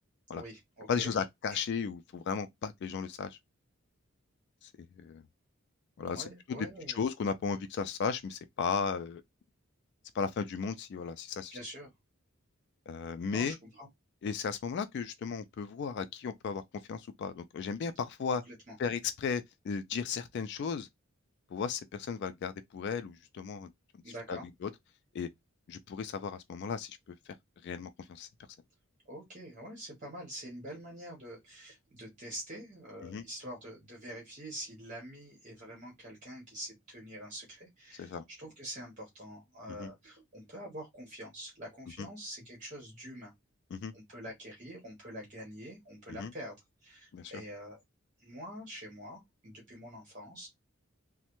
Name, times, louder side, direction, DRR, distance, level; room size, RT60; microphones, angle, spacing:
voice 1, 0.3-1.2 1.5-1.6 6.1-7.0 11.5-11.9 13.3-13.9 18.3-18.8 24.0-24.5 29.1-43.3 43.9-47.8 48.2-50.5, equal, 35° right, 1.1 m, -46 dB
voice 2, 0.9-3.4 4.6-4.7 5.0-5.2 6.0-9.2 10.1-11.6 12.9-13.6 14.2-16.6 16.9-18.4 18.8-20.9 21.5-23.7 24.3-24.7 25.1-25.3 25.7-27.2 27.6-28.3 33.0-33.3 38.0-38.2 39.8-39.9 42.0-42.1 43.7-43.9 46.2-46.3 47.1-47.3, left 6 dB, 55° left, 0.3 m, -35 dB
3.1 x 2.1 x 2.9 m
head